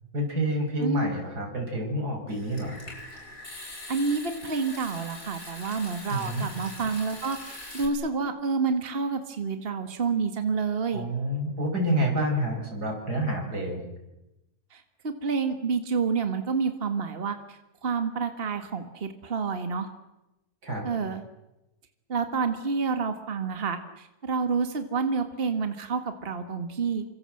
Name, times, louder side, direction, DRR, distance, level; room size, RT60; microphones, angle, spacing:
voice 1, 0.1-2.8 6.1-6.5 10.9-13.8 20.6-20.9, right 1 dB, 80° right, 2 dB, 6.5 m, -28 dB
Water tap faucet / Sink (filling or washing) / Trickle dribble, 2.3-7.9, left 2 dB, 75° left, 6.5 m, -42 dB
voice 2, 3.9-11.0 14.7-19.9 20.8-21.2 22.1-27.0, right 5 dB, 35° right, 8 dB, 1.9 m, -29 dB
28.0 x 25.5 x 7.9 m, 0.98 s
omnidirectional pair, 1.7 m